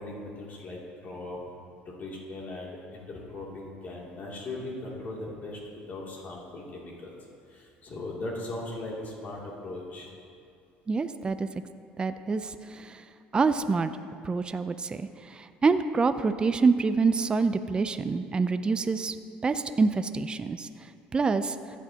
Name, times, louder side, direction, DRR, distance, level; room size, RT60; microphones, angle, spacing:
voice 1, 0.0-1.4 1.8-5.6 5.9-7.1 7.5-10.1, left 2 dB, 45° left, -3 dB, 2.7 m, -39 dB
voice 2, 10.9-11.5 12.0-13.0 13.3-13.9 14.2-19.2 19.4-20.7 21.1-21.6, right 4 dB, 25° right, 10 dB, 0.4 m, -26 dB
15.5 x 8.3 x 2.9 m, 2.3 s
supercardioid pair, 90°, 4 cm